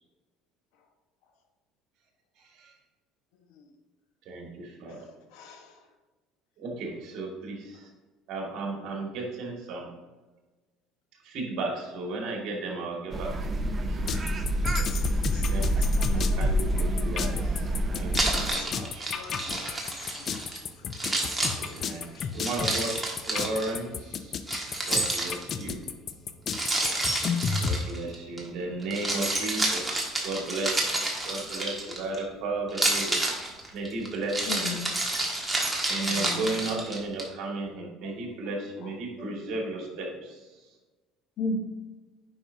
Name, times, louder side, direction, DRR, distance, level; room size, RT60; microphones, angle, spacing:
voice 1, 4.3-5.0 6.6-7.8 8.3-9.9 11.2-13.3 13.9-14.0 15.5-15.7 16.0-17.4 17.9-18.1 18.4-19.2 21.6-22.9 23.2-24.6 24.9-25.8 27.6-31.0 31.2-34.6 35.9-40.4, right 2 dB, 60° right, 0 dB, 2.0 m, -34 dB
voice 2, 5.3-5.8 14.7-16.2 18.4-20.5 21.0-21.9 22.1-22.3, left 5 dB, 80° left, 4 dB, 1.2 m, -50 dB
sound 1, 13.1-18.5, equal, 25° right, 0.6 m, -27 dB
sound 2, 14.1-27.8, left 6 dB, 40° left, 0.5 m, -32 dB
Keys jangling, 18.1-20.6 20.9-23.7 24.5-25.7 26.5-28.4 28.8-32.2 32.7-37.2, right 2 dB, 10° right, 1.5 m, -29 dB
voice 3, 34.5-35.0 36.0-36.6 38.0-38.1 39.2-39.3 41.4-41.6, left 3 dB, 55° left, 6 dB, 1.0 m, -33 dB
8.9 x 5.4 x 2.7 m, 1.2 s
cardioid pair, 120°, 0 cm